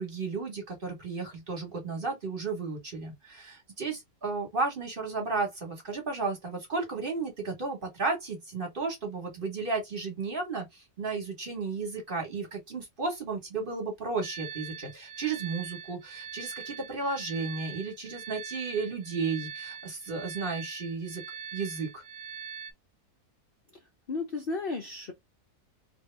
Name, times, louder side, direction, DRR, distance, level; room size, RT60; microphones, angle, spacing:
voice 1, 0.0-21.2 21.5-22.0, right 4 dB, 35° right, 1.3 m, -33 dB
sound 1, 14.2-22.7, right 7 dB, 70° right, 1.0 m, -42 dB
voice 2, 24.1-25.1, left 3 dB, 50° left, 0.7 m, -33 dB
2.8 x 2.7 x 3.1 m
omnidirectional pair, 1.6 m